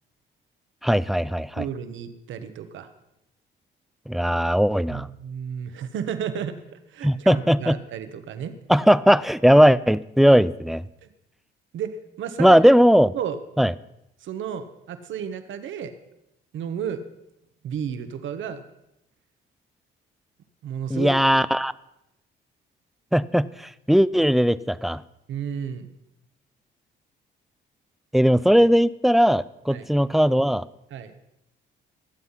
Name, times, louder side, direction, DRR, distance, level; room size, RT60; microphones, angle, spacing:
voice 1, 0.8-1.6 4.1-5.1 7.0-7.8 8.7-10.8 12.4-13.1 13.6-13.7 20.9-21.7 23.1-25.0 28.1-30.7, equal, ahead, 17 dB, 0.4 m, -18 dB
voice 2, 1.6-2.9 4.9-8.5 11.0-11.1 11.7-12.6 13.1-13.4 14.2-15.9 16.5-17.0 17.6-18.6 20.6-21.1 25.3-25.9 29.7-29.8 30.9-31.1, right 8 dB, 75° right, 9 dB, 1.3 m, -32 dB
22.0 x 8.0 x 5.7 m, 0.85 s
cardioid pair, 90°, 20 cm